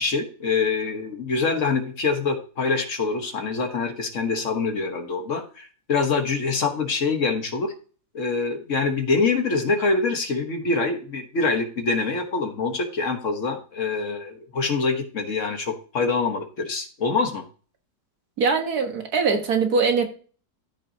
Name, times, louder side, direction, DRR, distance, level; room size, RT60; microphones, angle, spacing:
voice 1, 0.0-7.7 8.1-17.4, left 4 dB, 50° left, 1.5 m, -25 dB
voice 2, 18.4-20.1, right 5 dB, 65° right, 1.9 m, -22 dB
14.0 x 5.7 x 2.8 m
omnidirectional pair, 1.8 m